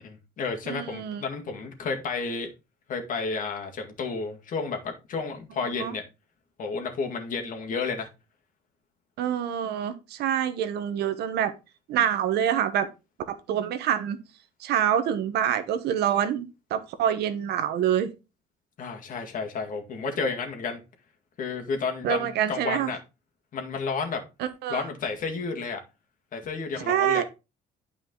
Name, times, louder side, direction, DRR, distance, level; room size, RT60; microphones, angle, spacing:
voice 1, 0.0-2.5 2.9-6.0 6.6-8.1 18.8-20.8 21.4-23.0 23.5-24.2 24.7-25.8 26.3-27.2, left 4 dB, 50° left, 2.0 m, -31 dB
voice 2, 0.7-1.2 5.6-5.9 9.2-11.5 11.9-12.9 13.3-14.2 14.6-18.1 22.0-22.9 24.4-24.9 26.8-27.2, right 9 dB, 75° right, 1.1 m, -26 dB
9.4 x 4.9 x 3.8 m
cardioid pair, 110°, 17 cm